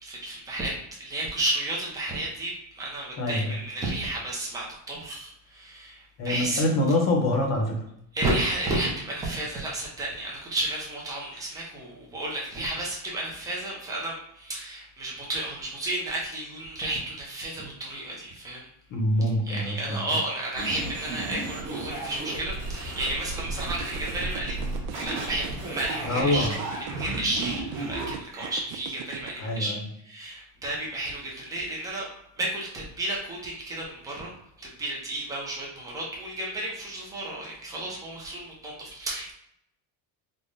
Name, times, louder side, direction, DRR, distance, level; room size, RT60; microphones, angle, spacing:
voice 1, 0.0-6.7 8.1-18.7 19.4-24.6 25.0-29.7 30.0-32.1 32.4-34.3 34.6-39.3, right 1 dB, 10° right, -4 dB, 0.3 m, -32 dB
voice 2, 6.2-7.8 18.9-20.0 26.1-26.5 29.4-29.8, left 1 dB, 35° left, 1 dB, 0.6 m, -25 dB
sound 1, 20.6-28.6, right 2 dB, 35° right, 1.0 m, -34 dB
sound 2, 23.1-29.3, right 11 dB, 80° right, 0.6 m, -39 dB
3.6 x 2.1 x 3.8 m, 0.74 s
cardioid pair, 175°, 47 cm